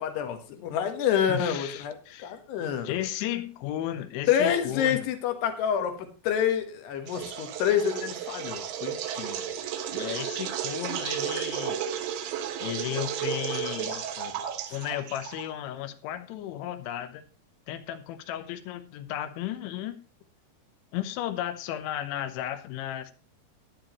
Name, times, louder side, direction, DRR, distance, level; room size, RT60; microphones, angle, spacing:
voice 1, 0.0-1.9 2.2-3.0 4.3-9.5 13.9-14.3, left 8 dB, 70° left, 3.3 m, -28 dB
voice 2, 1.3-2.4 2.8-5.1 9.9-11.8 12.6-14.1 14.7-17.2 17.7-20.0 20.9-23.1, left 12 dB, 90° left, 3.2 m, -34 dB
sound 1, 7.1-15.6, right 9 dB, 80° right, 3.5 m, -33 dB
15.0 x 10.0 x 3.0 m
omnidirectional pair, 5.2 m